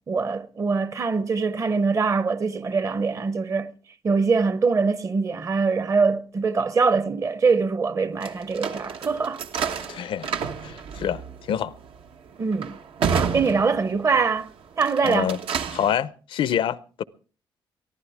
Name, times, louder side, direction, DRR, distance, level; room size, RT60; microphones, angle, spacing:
voice 1, 0.1-3.7 4.0-9.4 12.4-12.8 13.1-14.5 14.8-15.3, right 4 dB, 35° right, 0.8 m, -23 dB
sound 1, 8.2-14.3 14.7-15.9, right 6 dB, 85° right, 1.2 m, -30 dB
voice 2, 9.9-10.3 10.6-11.2 11.5-11.7 15.0-15.4 15.7-17.0, left 9 dB, 80° left, 0.6 m, -26 dB
23.0 x 14.5 x 3.5 m
cardioid pair, 125°, 9 cm